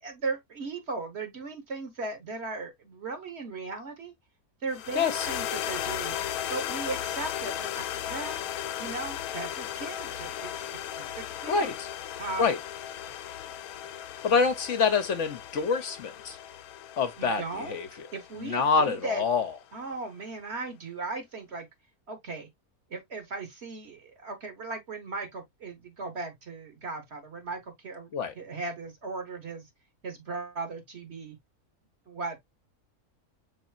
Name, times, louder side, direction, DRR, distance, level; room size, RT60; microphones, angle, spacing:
voice 1, 0.0-4.1 4.6-6.2 6.5-8.4 8.8-10.5 11.0-11.7 12.2-12.5 13.0-13.1 17.2-17.8 18.1-19.2 19.7-21.7 22.1-22.5 22.9-28.1 28.3-29.7 30.0-31.4 32.1-32.4, right 3 dB, 50° right, 1.3 m, -37 dB
sound 1, 4.7-19.1, left 10 dB, 85° left, 1.1 m, -36 dB
voice 2, 4.9-5.3 11.5-11.9 12.4-12.6 14.2-16.4 17.0-17.9 18.4-19.5 28.1-28.3, left 5 dB, 60° left, 1.1 m, -26 dB
5.6 x 4.1 x 2.3 m
omnidirectional pair, 1.5 m